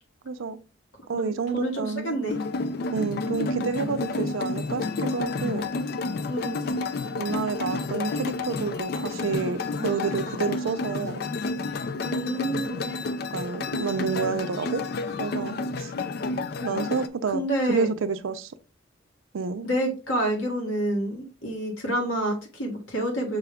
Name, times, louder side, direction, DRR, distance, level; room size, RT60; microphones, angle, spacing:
voice 1, 0.2-0.6 1.1-2.2 2.9-5.7 7.2-11.3 13.3-14.8 15.2-15.9 16.6-18.5 19.3-19.7, right 5 dB, 90° right, 0.5 m, -29 dB
voice 2, 1.1-2.4 6.3-6.7 12.0-13.0 17.3-17.9 19.6-23.4, right 1 dB, 80° left, 1.6 m, -28 dB
sound 1, 2.3-17.1, left 3 dB, 50° left, 0.4 m, -30 dB
5.8 x 2.3 x 3.5 m
head